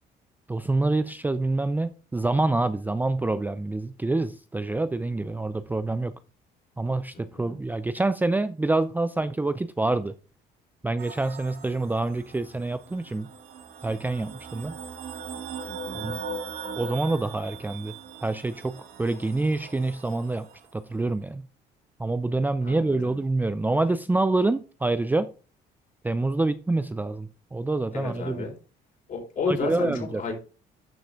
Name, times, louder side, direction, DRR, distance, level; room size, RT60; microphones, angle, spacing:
voice 1, 0.5-6.2 6.8-10.1 10.8-13.3 13.8-14.8 15.9-16.2 16.8-17.9 18.2-20.5 20.7-21.5 22.0-25.3 26.0-28.5 29.5-30.3, right 2 dB, 10° right, 0.5 m, -26 dB
voice 2, 7.1-7.6 15.6-16.1 22.6-23.2 27.9-28.5 29.1-30.3, left 4 dB, 50° left, 4.7 m, -32 dB
sound 1, 11.0-20.7, right 4 dB, 80° right, 2.4 m, -40 dB
12.0 x 5.8 x 3.7 m
cardioid pair, 110°, 17 cm